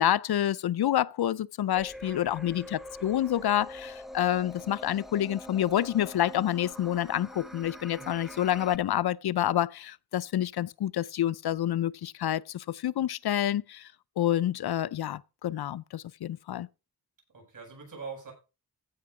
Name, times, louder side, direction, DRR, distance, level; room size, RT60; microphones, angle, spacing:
voice 1, 0.0-13.9 14.2-16.7, left 12 dB, 75° left, 0.5 m, -28 dB
sound 1, 1.7-8.8, equal, ahead, 0.5 m, -44 dB
voice 2, 2.0-2.6 7.9-8.2 17.3-18.3, right 4 dB, 55° right, 7.9 m, -44 dB
15.5 x 6.4 x 4.9 m
wide cardioid pair, 150°, 38 cm